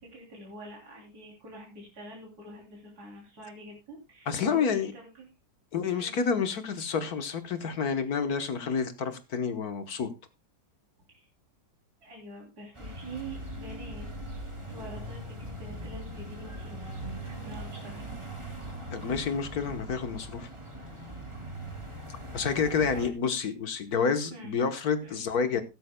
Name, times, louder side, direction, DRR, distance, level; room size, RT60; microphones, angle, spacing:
voice 1, 0.1-5.3 5.9-6.2 11.1-11.3 12.0-14.1 14.7-16.9 17.2-18.0 22.9-23.1 24.3-24.5 25.0-25.2, right 2 dB, 55° right, 3.7 m, -45 dB
voice 2, 4.3-4.9 5.7-10.1 18.9-20.5 22.3-25.6, left 6 dB, 60° left, 1.5 m, -29 dB
sound 1, 12.8-23.1, right 1 dB, 15° right, 2.2 m, -40 dB
15.5 x 13.0 x 2.2 m
omnidirectional pair, 2.0 m